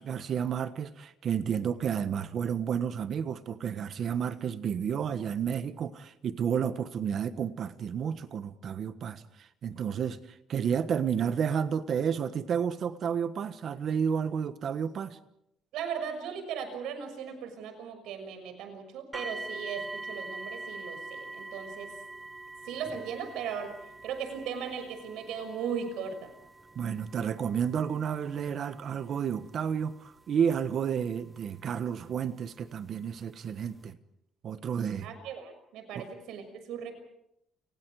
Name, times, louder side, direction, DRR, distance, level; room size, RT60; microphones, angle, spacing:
voice 1, 0.0-10.2 10.5-15.2 26.7-34.0 34.4-35.1 35.9-36.1, right 7 dB, 45° right, 1.3 m, -31 dB
voice 2, 15.7-21.9 22.6-23.7 24.0-26.3 35.0-37.0, right 7 dB, 80° right, 6.3 m, -37 dB
sound 1, 19.1-32.0 32.9-33.0 33.5-33.6, right 2 dB, 10° right, 1.0 m, -44 dB
30.0 x 29.5 x 4.9 m
cardioid pair, 150°, 0 cm